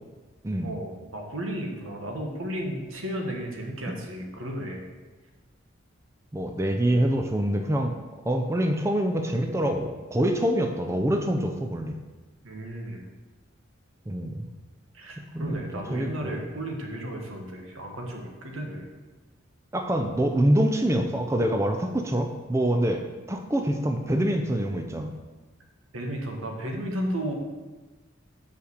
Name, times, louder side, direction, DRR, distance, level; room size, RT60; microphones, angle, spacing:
voice 1, 0.6-4.9 12.4-13.0 14.9-18.9 25.9-27.3, right 1 dB, 90° right, 1 dB, 1.3 m, -34 dB
voice 2, 6.3-7.9 8.3-12.0 14.1-14.5 15.2-16.4 19.7-23.0 23.3-25.1, right 1 dB, 15° right, 4 dB, 0.4 m, -25 dB
5.6 x 5.0 x 6.5 m, 1.3 s
head